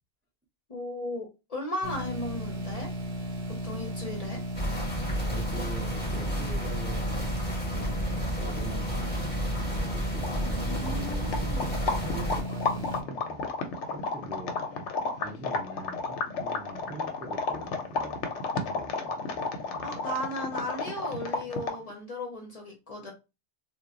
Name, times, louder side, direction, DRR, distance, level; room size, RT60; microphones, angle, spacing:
voice 1, 0.7-2.9 3.6-4.4 10.4-11.7 19.8-23.1, left 1 dB, 40° left, 1 dB, 0.6 m, -36 dB
sound 1, 1.8-13.0, equal, 65° right, 0.8 m, -35 dB
sound 2, 4.5-12.4, equal, 10° left, 1.0 m, -32 dB
voice 2, 5.1-7.3 7.7-9.4 9.8-11.4 11.8-14.8 15.1-18.3 18.6-19.9, right 1 dB, 20° right, -2 dB, 0.3 m, -43 dB
sound 3, 10.2-21.9, left 3 dB, 85° left, 0.9 m, -32 dB
2.1 x 2.1 x 3.6 m, 0.27 s
omnidirectional pair, 1.2 m